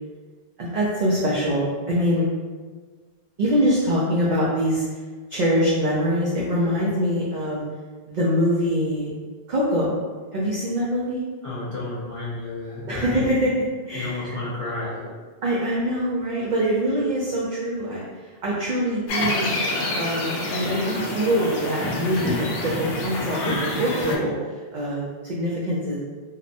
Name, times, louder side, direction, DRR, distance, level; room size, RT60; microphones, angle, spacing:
voice 1, 0.6-2.3 3.4-4.8 5.3-7.6 8.1-9.1 9.5-9.9 10.3-11.2 12.9-13.5 13.9-14.4 15.4-18.1 18.4-19.5 20.0-22.7 23.0-26.0, equal, 60° right, -6 dB, 0.5 m, -24 dB
voice 2, 11.4-13.3 13.9-15.0, left 2 dB, 55° left, -10 dB, 0.3 m, -31 dB
sound 1, 19.1-24.2, left 2 dB, 85° left, 0.9 m, -27 dB
2.8 x 2.1 x 2.5 m, 1.4 s
omnidirectional pair, 1.2 m